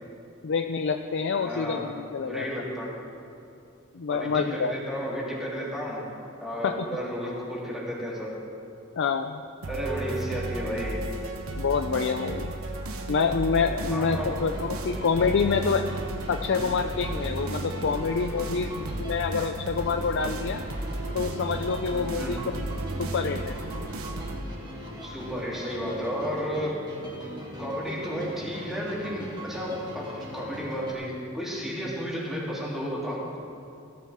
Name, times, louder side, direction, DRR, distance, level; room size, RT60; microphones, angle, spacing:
voice 1, 0.4-2.5 3.9-4.7 6.6-6.8 9.0-9.4 11.6-12.5 13.1-15.8 16.3-20.6 21.1-22.6 23.0-23.6, left 5 dB, 60° left, 6 dB, 0.5 m, -27 dB
voice 2, 1.4-1.8 2.2-2.9 4.1-6.0 6.4-8.3 9.7-11.0 13.8-14.4 22.2-22.4 25.0-26.7 27.6-33.4, equal, ahead, -7 dB, 3.2 m, -32 dB
sound 1, 9.6-24.4, right 2 dB, 85° right, 1.0 m, -34 dB
sound 2, 14.3-30.9, equal, 20° right, 2.0 m, -41 dB
17.5 x 12.5 x 3.6 m, 2.6 s
head